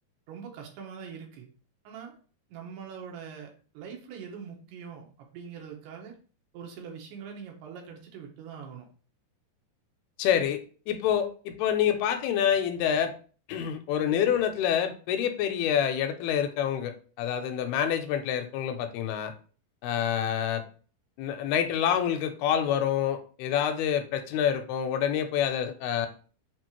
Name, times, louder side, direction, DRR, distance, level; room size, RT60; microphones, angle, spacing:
voice 1, 0.3-1.5 1.8-2.2 2.5-6.1 6.5-8.9, right 7 dB, 85° right, 1 dB, 3.0 m, -43 dB
voice 2, 10.2-10.6 10.9-13.1 13.5-19.3 19.8-20.6 21.2-26.1, left 9 dB, 85° left, 7 dB, 2.4 m, -27 dB
6.9 x 2.4 x 3.0 m, 0.40 s
omnidirectional pair, 4.6 m